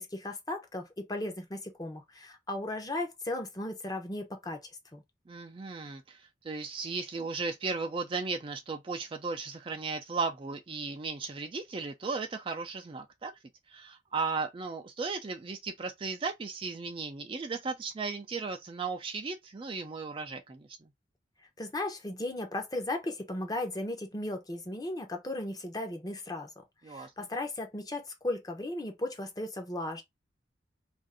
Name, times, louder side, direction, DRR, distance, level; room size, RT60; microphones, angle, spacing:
voice 1, 0.0-5.0 21.6-26.5 26.9-30.0, left 1 dB, 20° left, 0.7 m, -36 dB
voice 2, 5.3-13.3 13.7-20.7 26.8-27.3, right 4 dB, 30° right, 0.3 m, -36 dB
2.6 x 2.5 x 3.5 m
head